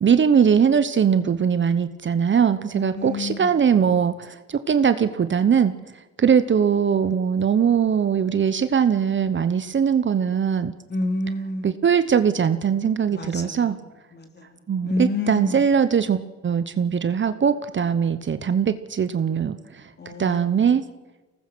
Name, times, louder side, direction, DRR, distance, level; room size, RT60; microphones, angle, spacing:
voice 1, 0.0-5.7 6.2-10.7 11.6-13.8 14.7-19.8 20.2-20.8, right 7 dB, 40° right, 12 dB, 1.0 m, -21 dB
voice 2, 2.7-3.5 10.9-11.7 13.1-13.7 14.1-15.6 20.0-20.4, left 2 dB, 35° left, 5 dB, 3.8 m, -29 dB
24.5 x 19.5 x 6.2 m, 1.1 s
cardioid pair, 90°, 30 cm